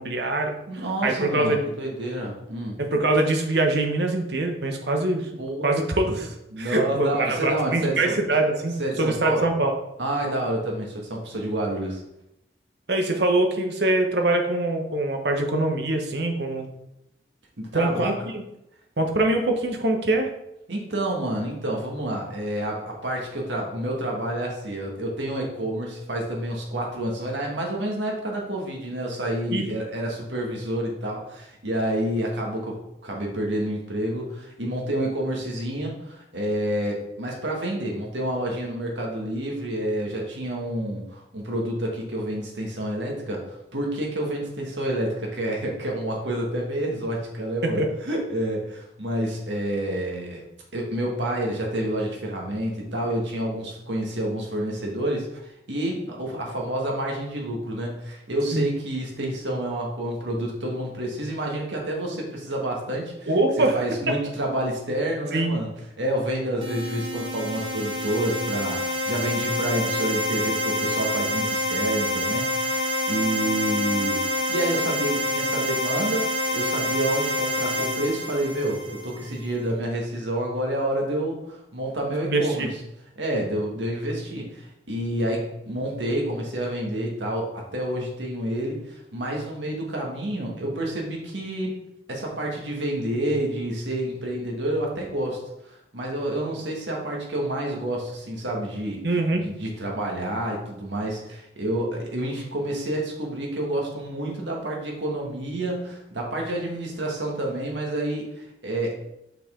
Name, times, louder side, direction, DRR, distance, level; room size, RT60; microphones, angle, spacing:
voice 1, 0.0-0.5 1.0-1.6 2.8-5.3 5.6-9.7 12.9-16.7 17.7-18.4 19.0-20.3 29.5-29.6 47.6-47.9 58.5-58.7 63.3-63.7 64.1-64.2 65.3-65.5 82.2-82.7 99.0-99.5, right 2 dB, 65° right, 3 dB, 1.0 m, -23 dB
voice 2, 0.7-2.8 5.4-6.2 6.5-8.1 8.8-9.4 10.0-12.0 17.6-18.1 20.7-32.8 33.0-50.4 50.7-63.3 63.6-65.7 66.0-76.3 76.5-82.7 83.1-91.7 92.1-95.4 95.6-99.0 99.4-108.9, right 1 dB, 90° right, -1 dB, 1.9 m, -29 dB
sound 1, 66.6-79.3, left 1 dB, 30° right, 1.2 m, -27 dB
6.4 x 5.8 x 3.8 m, 0.84 s
head